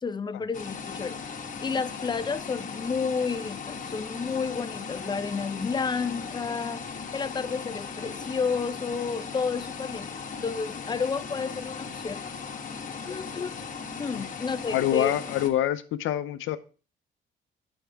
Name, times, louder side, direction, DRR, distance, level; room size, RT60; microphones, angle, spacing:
voice 1, 0.0-1.2 1.6-6.9 7.1-10.2 10.4-12.2 13.1-13.5 14.0-15.1, left 5 dB, 20° left, 0.4 m, -31 dB
sound 1, 0.5-15.5, left 5 dB, 40° left, 1.1 m, -38 dB
voice 2, 14.7-16.6, left 12 dB, 85° left, 0.6 m, -26 dB
6.8 x 6.1 x 3.4 m
cardioid pair, 90°, 20 cm